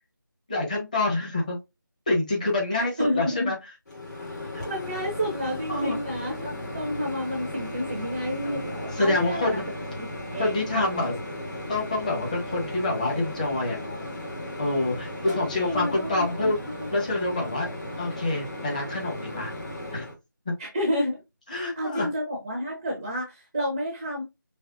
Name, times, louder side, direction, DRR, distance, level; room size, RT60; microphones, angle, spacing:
voice 1, 0.5-1.6 2.1-3.5 5.7-6.0 8.4-8.6 9.0-9.6 10.4-11.1 11.7-14.1 14.6-16.6 16.9-17.7 18.0-19.5 19.9-20.1 20.4-20.5 21.5-22.1, left 2 dB, 20° left, -2 dB, 1.2 m, -27 dB
voice 2, 2.7-3.5 4.6-10.1 10.3-11.0 15.3-16.9 20.6-21.2 21.5-24.2, equal, 10° right, -1 dB, 0.6 m, -31 dB
Microwave oven, 3.9-20.1, left 1 dB, 50° left, 2.7 m, -36 dB
5.5 x 3.0 x 2.5 m, 0.23 s
figure-of-eight pair, 165°, 11 cm